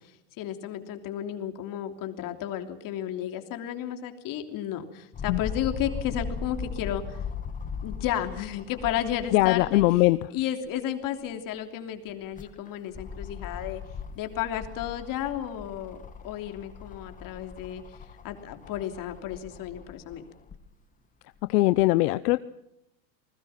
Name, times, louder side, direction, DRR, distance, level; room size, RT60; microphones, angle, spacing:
voice 1, 0.4-7.2 7.8-10.1 10.3-13.8 14.1-17.8 18.2-20.2, left 10 dB, 40° left, 6 dB, 3.2 m, -33 dB
sound 1, 5.1-10.2 10.6-10.7 12.1-20.6 21.4-21.5, left 6 dB, 15° left, 1.5 m, -39 dB
voice 2, 9.3-10.2 21.5-22.4, left 19 dB, 70° left, 14 dB, 0.9 m, -21 dB
28.5 x 20.5 x 5.9 m, 0.83 s
supercardioid pair, 140°, 49 cm